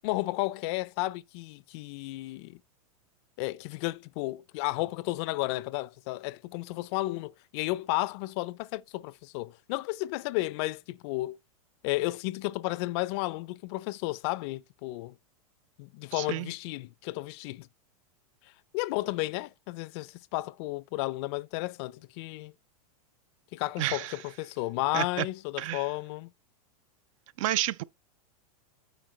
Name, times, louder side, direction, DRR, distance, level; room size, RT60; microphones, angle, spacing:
voice 1, 0.0-2.6 3.4-11.4 11.8-15.1 15.8-17.7 18.7-22.5 23.5-26.3, left 20 dB, 50° left, 0.4 m, -33 dB
voice 2, 16.1-16.5 23.8-24.1 24.9-25.3 25.6-25.8 27.4-27.8, right 14 dB, 60° right, 0.4 m, -30 dB
9.0 x 5.0 x 3.1 m
supercardioid pair, 135°, 19 cm